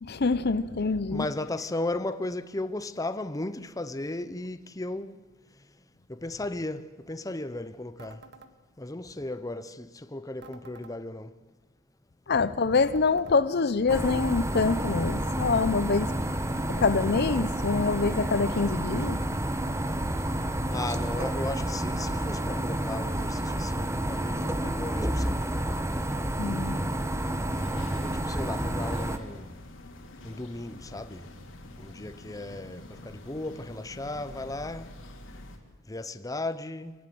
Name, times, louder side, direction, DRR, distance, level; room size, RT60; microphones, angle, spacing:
voice 1, 0.0-1.3 12.3-16.2 16.7-19.2 26.4-26.9, left 4 dB, 50° left, 0.7 m, -25 dB
voice 2, 1.1-5.2 6.1-8.3 8.8-11.3 20.7-25.6 27.9-29.6 30.2-31.3 31.8-34.9 35.9-36.9, left 2 dB, 15° left, 0.8 m, -35 dB
sound 1, 8.0-8.5 10.4-10.9 12.8-13.4 15.3-15.8, right 3 dB, 55° right, 1.7 m, -50 dB
sound 2, 13.9-29.2, right 1 dB, 15° right, 1.1 m, -30 dB
sound 3, 27.5-35.6, left 1 dB, 70° left, 3.4 m, -47 dB
26.5 x 19.0 x 7.8 m
head